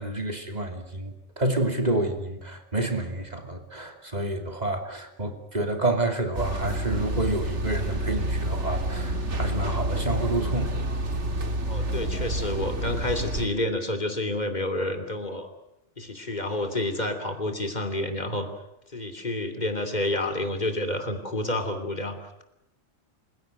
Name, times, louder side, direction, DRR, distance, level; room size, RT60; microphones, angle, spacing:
voice 1, 0.0-10.7, right 1 dB, 35° right, 5 dB, 2.9 m, -29 dB
sound 1, 6.3-13.5, right 1 dB, 75° right, 2.3 m, -29 dB
voice 2, 11.7-15.5 16.0-18.5 18.9-22.4, left 1 dB, 40° left, 8 dB, 3.1 m, -29 dB
28.0 x 17.0 x 9.2 m, 0.81 s
omnidirectional pair, 1.2 m